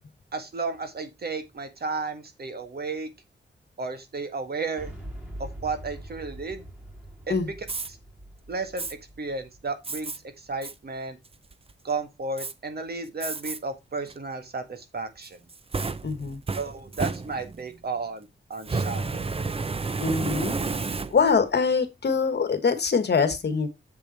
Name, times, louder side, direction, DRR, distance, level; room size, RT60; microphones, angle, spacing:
voice 1, 0.3-3.1 3.8-4.9 5.6-6.7 7.3-7.5 8.5-8.9 9.2-10.1 10.5-11.2 11.8-15.4 16.6-19.3, right 4 dB, 55° right, 1.8 m, -33 dB
Boom, 4.8-10.7, right 1 dB, 5° right, 3.8 m, -43 dB
Fire, 7.6-7.9 8.8-8.9 9.8-10.2 10.6-10.7 11.3-11.7 12.4-12.5 13.2-13.6 14.1-14.2 15.2-17.7 18.6-21.4, right 4 dB, 30° right, 0.7 m, -31 dB
voice 2, 16.0-16.4 20.0-20.5 21.1-23.7, left 5 dB, 60° left, 1.7 m, -23 dB
7.6 x 6.9 x 4.3 m
wide cardioid pair, 150°, 20 cm